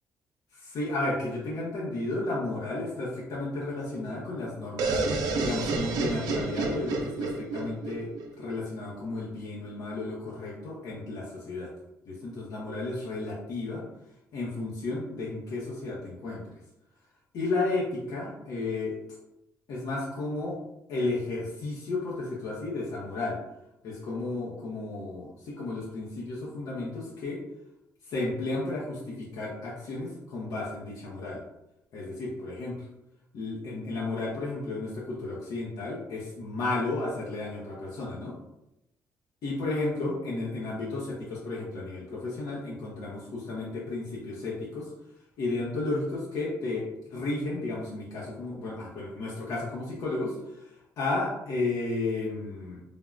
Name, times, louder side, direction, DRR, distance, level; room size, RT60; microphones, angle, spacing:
voice 1, 0.5-5.0 5.4-8.1 8.4-11.7 12.1-13.8 14.3-16.4 17.3-18.9 19.7-20.6 20.9-23.4 23.8-27.4 28.1-31.4 31.9-32.8 33.3-38.4 39.4-44.9 45.4-50.7 51.0-52.8, left 2 dB, 70° left, -5 dB, 0.7 m, -33 dB
sound 1, 4.8-8.6, right 3 dB, 80° right, 0.4 m, -30 dB
3.4 x 2.2 x 2.4 m, 0.86 s
cardioid pair, 125°, 7 cm